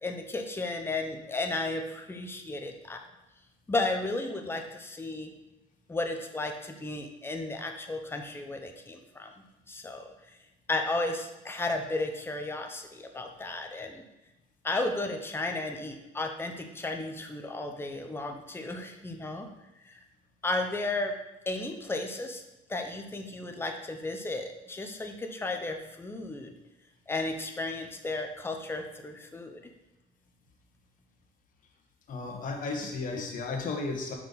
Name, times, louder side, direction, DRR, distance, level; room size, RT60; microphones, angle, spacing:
voice 1, 0.0-3.0 3.7-5.3 5.9-10.1 10.7-14.0 14.6-19.5 19.8-20.0 20.4-21.2 21.5-22.4 22.7-26.5 27.1-29.7, left 2 dB, 15° left, 4 dB, 0.7 m, -34 dB
voice 2, 32.1-34.1, left 3 dB, 50° left, 2 dB, 1.2 m, -34 dB
5.2 x 4.7 x 4.0 m, 0.97 s
cardioid pair, 110°, 17 cm